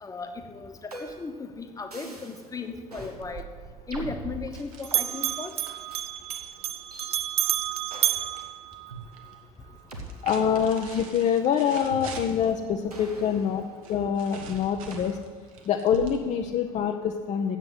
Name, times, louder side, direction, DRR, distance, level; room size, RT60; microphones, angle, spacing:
voice 1, 0.0-3.4 3.9-5.5, left 4 dB, 20° left, 5 dB, 1.1 m, -36 dB
sound 1, 0.9-1.4 1.9-2.5 2.9-3.2 3.9-5.1 5.9-6.1 6.9-7.1 7.9-8.3 8.9-9.0 9.9-10.0 10.9-11.2 11.9-12.5 12.9-14.2 14.9-15.1 15.9-16.3, right 1 dB, 85° right, 1.1 m, -42 dB
Bell, 3.2-4.6 4.8-9.3, right 13 dB, 35° right, 0.4 m, -30 dB
sound 2, 4.5-8.5 8.7-9.3 9.9-12.6 13.8-16.5, right 5 dB, 65° right, 1.2 m, -46 dB
voice 2, 10.2-13.6 13.9-15.2 15.7-17.6, left 8 dB, 35° left, 4 dB, 0.6 m, -25 dB
7.8 x 7.5 x 8.1 m, 1.5 s
figure-of-eight pair, 60°, 19 cm